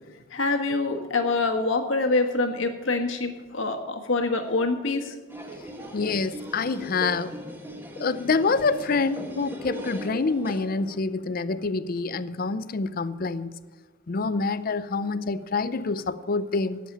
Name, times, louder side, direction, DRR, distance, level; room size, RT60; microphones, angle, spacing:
voice 1, 0.3-5.1, left 3 dB, 75° left, 5 dB, 1.5 m, -25 dB
sound 1, 5.3-11.0, right 1 dB, 10° right, 1.4 m, -38 dB
voice 2, 5.9-7.4 8.0-13.5 14.1-16.8, left 4 dB, 45° left, 15 dB, 0.5 m, -26 dB
11.5 x 7.5 x 8.4 m, 1.3 s
head